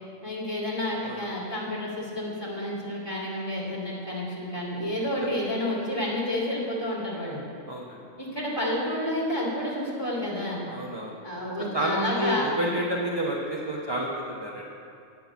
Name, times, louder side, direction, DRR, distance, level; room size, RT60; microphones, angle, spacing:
voice 1, 0.2-7.4 8.2-10.6 11.2-12.5, left 1 dB, 20° left, -6 dB, 2.1 m, -30 dB
voice 2, 7.7-8.0 10.7-11.2 11.7-14.7, equal, 25° right, -3 dB, 0.7 m, -30 dB
8.8 x 5.8 x 8.1 m, 2.5 s
omnidirectional pair, 1.3 m